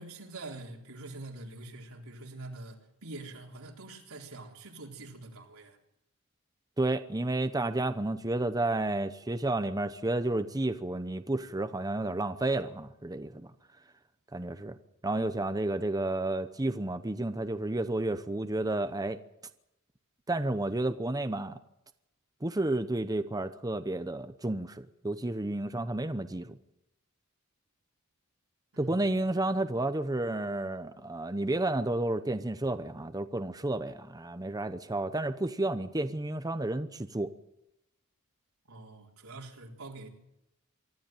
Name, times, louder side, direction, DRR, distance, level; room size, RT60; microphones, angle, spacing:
voice 1, 0.0-5.8 28.7-29.1 38.7-40.1, right 2 dB, 80° right, 1 dB, 3.9 m, -45 dB
voice 2, 6.8-13.5 14.3-14.8 15.0-19.2 20.3-21.6 22.4-26.6 28.8-37.3, right 2 dB, 20° right, 9 dB, 0.8 m, -31 dB
25.0 x 13.0 x 9.0 m, 0.85 s
head